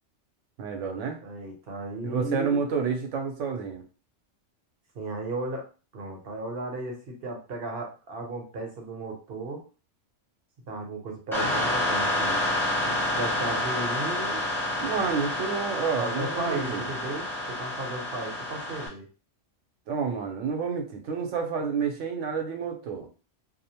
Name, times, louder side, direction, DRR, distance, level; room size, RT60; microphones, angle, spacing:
voice 1, 0.6-1.2 2.0-3.8 14.8-16.9 19.9-23.1, right 6 dB, 80° right, 4 dB, 1.0 m, -29 dB
voice 2, 1.2-2.7 4.9-5.7 5.9-9.6 10.7-12.4 12.8-14.4 16.0-19.1, right 2 dB, 55° right, 1 dB, 0.9 m, -35 dB
sound 1, 11.3-18.9, left 1 dB, ahead, 0.7 m, -29 dB
2.6 x 2.0 x 2.8 m, 0.35 s
omnidirectional pair, 1.3 m